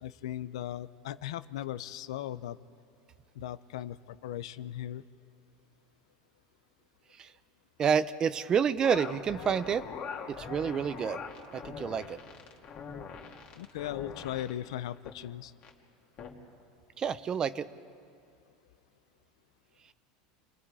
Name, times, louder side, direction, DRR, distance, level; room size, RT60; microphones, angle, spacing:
voice 1, 0.0-2.6 3.3-5.1 13.5-15.5, left 12 dB, 90° left, 15 dB, 0.7 m, -38 dB
voice 2, 7.8-9.9 10.3-11.2 11.5-12.2 17.0-17.7, right 7 dB, 25° right, 15 dB, 0.6 m, -29 dB
sound 1, 8.8-14.5 15.0-15.2 15.6-15.7 16.2-16.3, left 6 dB, 40° left, 2.3 m, -42 dB
29.0 x 21.5 x 4.9 m, 2.4 s
supercardioid pair, 145°, 3 cm